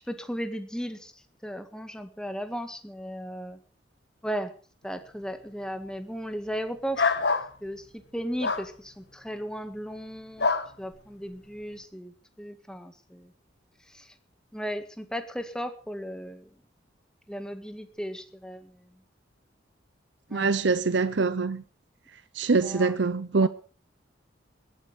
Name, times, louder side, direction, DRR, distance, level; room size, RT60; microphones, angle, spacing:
voice 1, 0.1-1.1 1.4-3.6 4.2-4.5 4.8-7.1 7.6-7.8 8.1-10.5 10.8-13.3 13.9-14.1 14.5-16.5 17.3-18.7 20.3-20.5 22.5-22.9 23.4-23.5, equal, 5° left, 1.7 m, -36 dB
sound 1, 6.9-7.5 8.4-8.7 10.4-10.7, left 4 dB, 60° left, 1.4 m, -25 dB
voice 2, 20.3-21.6 22.3-23.5, right 4 dB, 70° right, 0.7 m, -24 dB
20.0 x 12.5 x 5.1 m
head